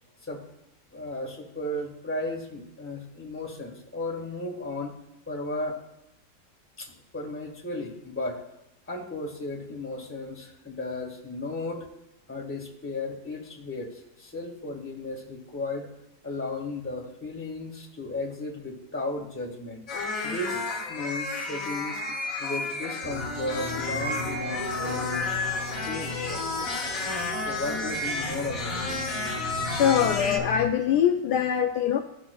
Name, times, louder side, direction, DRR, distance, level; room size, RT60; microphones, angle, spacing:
voice 1, 0.9-4.9 5.3-5.8 6.8-8.4 8.9-11.8 12.3-15.9 16.2-19.8 20.2-20.6 20.9-22.0 22.4-25.4 25.8-26.7 27.1-29.2, left 2 dB, 5° left, 0 dB, 1.5 m, -35 dB
sound 1, 19.9-30.4, left 3 dB, 50° left, 1.8 m, -31 dB
sound 2, 23.0-30.7, left 1 dB, 40° right, 1.2 m, -36 dB
voice 2, 29.7-32.0, left 8 dB, 75° left, 4 dB, 1.1 m, -23 dB
15.0 x 5.8 x 2.3 m, 0.92 s
omnidirectional pair, 1.9 m